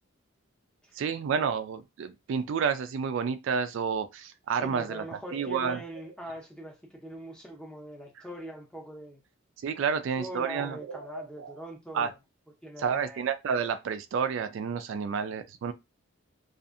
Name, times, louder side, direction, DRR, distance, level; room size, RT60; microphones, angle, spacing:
voice 1, 1.0-5.0 5.3-5.8 9.6-11.5 11.9-12.1 12.8-15.7, right 6 dB, 65° right, 0.3 m, -30 dB
voice 2, 4.6-9.2 9.9-12.2 12.6-13.2, equal, 5° left, 0.5 m, -42 dB
2.6 x 2.4 x 2.4 m
head